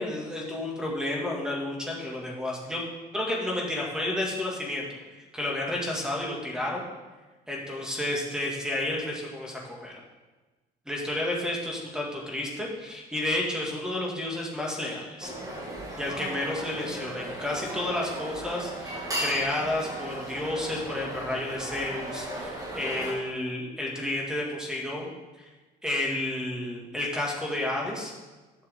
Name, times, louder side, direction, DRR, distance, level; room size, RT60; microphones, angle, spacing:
voice 1, 0.0-2.8 3.1-4.8 5.3-6.8 7.5-10.0 10.9-15.3 16.0-25.1 25.4-25.5 25.8-28.1, left 1 dB, 5° right, -2 dB, 2.2 m, -31 dB
sound 1, 15.2-23.1, right 1 dB, 20° right, 2.2 m, -36 dB
11.0 x 6.7 x 3.7 m, 1.2 s
cardioid pair, 110°, 17 cm